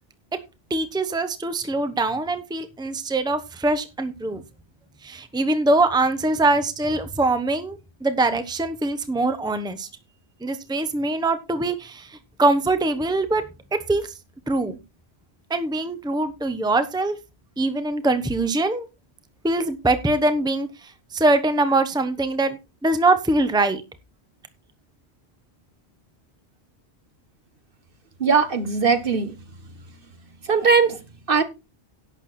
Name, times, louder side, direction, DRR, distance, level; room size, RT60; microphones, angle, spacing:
voice 1, 0.7-4.4 5.0-9.9 10.4-13.4 13.7-14.1 14.5-14.8 15.5-17.2 17.6-18.9 19.4-23.8, right 2 dB, 5° right, 0.9 m, -23 dB
voice 2, 28.2-29.3 30.5-31.0 31.3-31.4, right 5 dB, 55° right, 1.5 m, -19 dB
11.5 x 8.2 x 4.3 m
omnidirectional pair, 1.1 m